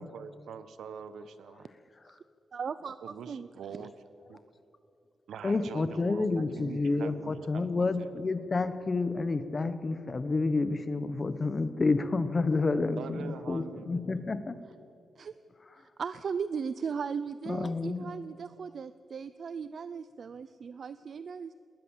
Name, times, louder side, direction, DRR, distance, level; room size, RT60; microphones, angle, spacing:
voice 1, 0.0-1.7 3.0-3.9 4.3-4.4 5.3-8.1 13.0-14.0, right 7 dB, 85° right, 13 dB, 1.1 m, -44 dB
voice 2, 2.5-3.5 15.2-15.3 15.8-21.5, right 6 dB, 45° right, 14 dB, 0.5 m, -37 dB
voice 3, 5.4-14.6 17.4-18.1, left 3 dB, 25° left, 12 dB, 0.9 m, -29 dB
19.5 x 19.5 x 7.3 m, 2.8 s
wide cardioid pair, 175°, 0 cm